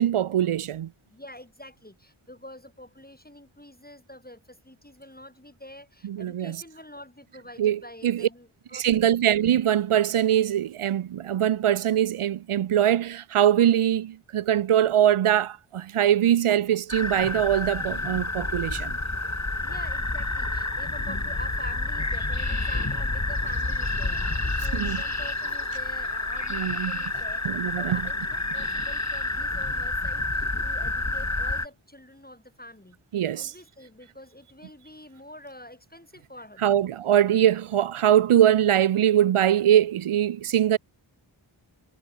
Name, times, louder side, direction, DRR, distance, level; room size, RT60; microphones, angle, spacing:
voice 1, 0.0-0.9 6.0-6.6 7.6-8.3 8.7-19.0 24.7-25.0 26.5-26.9 27.4-28.0 33.1-33.5 36.6-40.8, right 11 dB, 90° right, 0.6 m, -22 dB
voice 2, 1.1-9.2 19.6-27.5 27.8-33.0 33.3-36.9, left 1 dB, 20° left, 5.0 m, -46 dB
sound 1, 16.9-31.7, left 2 dB, 35° left, 3.5 m, -29 dB
wide cardioid pair, 55°, 49 cm